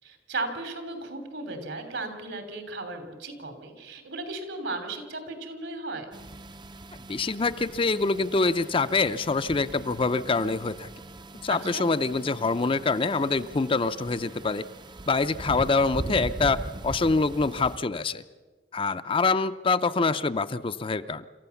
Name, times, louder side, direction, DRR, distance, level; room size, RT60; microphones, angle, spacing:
voice 1, 0.0-6.1 11.5-11.8, right 2 dB, 75° right, 7 dB, 3.2 m, -35 dB
sound 1, 6.1-17.8, right 2 dB, 25° right, 0.6 m, -41 dB
voice 2, 7.1-10.9 11.4-14.6 15.1-16.6 16.8-18.2 18.7-21.3, left 3 dB, 30° left, 12 dB, 0.5 m, -25 dB
27.0 x 14.0 x 7.1 m, 1.5 s
head